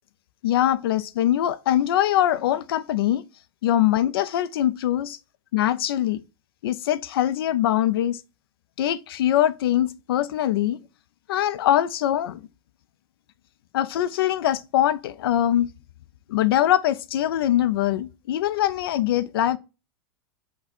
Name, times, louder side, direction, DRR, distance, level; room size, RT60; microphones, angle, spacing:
voice 1, 0.4-3.2 3.6-5.2 5.5-6.2 6.6-8.2 8.8-10.8 11.3-12.4 13.7-15.7 16.3-19.6, left 12 dB, 75° left, 0.4 m, -22 dB
5.6 x 2.2 x 4.2 m
hypercardioid pair, 100°, 12 cm